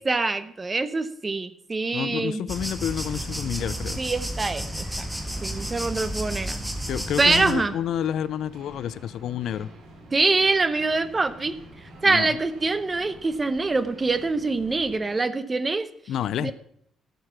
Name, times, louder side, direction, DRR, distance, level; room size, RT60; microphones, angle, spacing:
voice 1, 0.0-2.4 4.0-4.8 5.4-6.6 7.2-7.7 10.1-11.6 12.0-15.9 16.4-16.5, right 3 dB, 25° right, 0.9 m, -24 dB
voice 2, 1.9-4.0 6.9-9.7 12.0-12.4 16.1-16.5, left 10 dB, 75° left, 0.4 m, -29 dB
sound 1, 2.5-7.5, right 1 dB, 5° right, 1.7 m, -32 dB
sound 2, 3.0-15.0, right 1 dB, 90° right, 3.9 m, -48 dB
13.0 x 6.7 x 5.9 m
cardioid pair, 90°, 0 cm